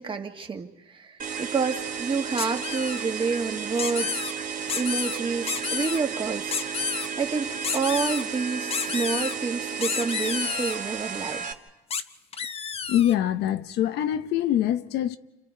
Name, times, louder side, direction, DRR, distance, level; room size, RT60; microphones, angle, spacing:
voice 1, 0.0-6.5 7.2-11.4, right 5 dB, 30° right, 1.7 m, -29 dB
sound 1, 1.2-11.5, right 6 dB, 50° right, 1.4 m, -33 dB
sound 2, 2.4-3.0 3.8-4.3 4.7-5.2 5.5-6.0 6.5-7.1 7.6-8.2 8.7-9.4 9.8-10.8 11.9-12.0 12.3-13.2, left 6 dB, 35° left, 0.7 m, -30 dB
voice 2, 12.9-15.2, left 11 dB, 80° left, 0.8 m, -24 dB
29.0 x 27.5 x 4.6 m
cardioid pair, 110°, 17 cm